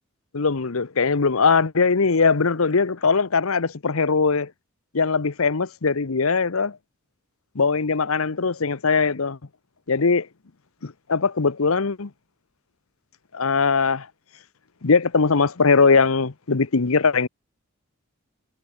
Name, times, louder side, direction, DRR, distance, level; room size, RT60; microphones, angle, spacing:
voice 1, 0.3-4.5 4.9-6.8 7.5-9.4 9.9-10.3 10.8-12.1 13.3-14.1 14.8-17.3, left 4 dB, 80° left, 0.9 m, -20 dB
head